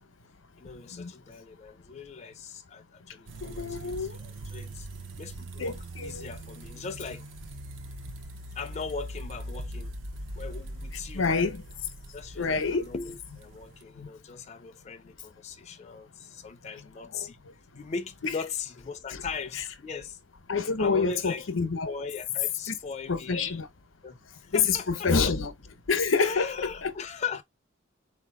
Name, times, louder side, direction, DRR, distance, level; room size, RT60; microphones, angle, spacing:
voice 1, 0.6-4.9 5.2-7.2 8.5-9.9 10.3-11.5 12.1-17.4 17.7-20.2 20.8-21.4 21.8-23.5 24.0-24.2 24.4-25.1 26.2-27.4, left 5 dB, 35° left, 0.4 m, -39 dB
sound 1, 3.3-13.8, right 1 dB, 70° right, 0.7 m, -41 dB
voice 2, 3.4-4.2 5.6-6.2 11.1-11.6 12.4-12.9 13.9-14.1 17.1-17.3 18.2-18.3 19.1-19.2 20.5-21.9 22.7-22.8 23.1-23.7 24.5-25.5 25.9-26.5 26.8-26.9, left 5 dB, 80° left, 0.8 m, -27 dB
4.2 x 2.7 x 3.6 m
head